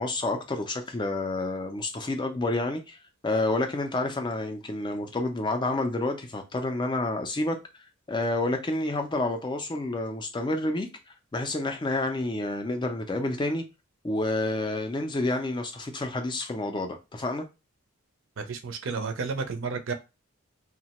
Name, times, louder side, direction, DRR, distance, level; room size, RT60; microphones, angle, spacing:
voice 1, 0.0-3.0 3.2-7.6 8.1-10.9 11.3-13.6 14.0-17.5, left 2 dB, 20° left, 0.3 m, -29 dB
voice 2, 18.4-19.9, right 4 dB, 60° right, 0.5 m, -31 dB
2.8 x 2.1 x 2.9 m
head